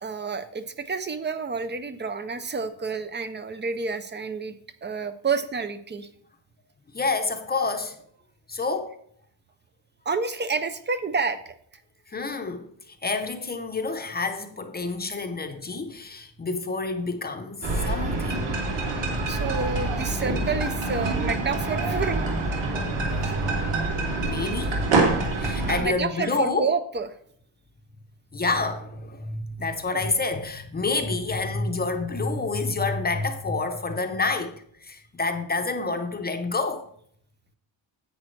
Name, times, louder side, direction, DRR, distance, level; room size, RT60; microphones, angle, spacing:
voice 1, 0.0-4.5 4.8-6.1 10.1-11.5 18.5-18.6 19.3-22.5 25.4-27.1, right 4 dB, 25° right, 0.4 m, -29 dB
voice 2, 6.9-8.0 8.5-8.9 12.1-18.5 24.2-24.8 25.4-26.7 28.3-36.9, left 3 dB, 20° left, 0.6 m, -28 dB
sound 1, 17.6-25.8, right 2 dB, 60° right, 2.6 m, -26 dB
10.5 x 8.4 x 3.2 m
cardioid pair, 170°, 49 cm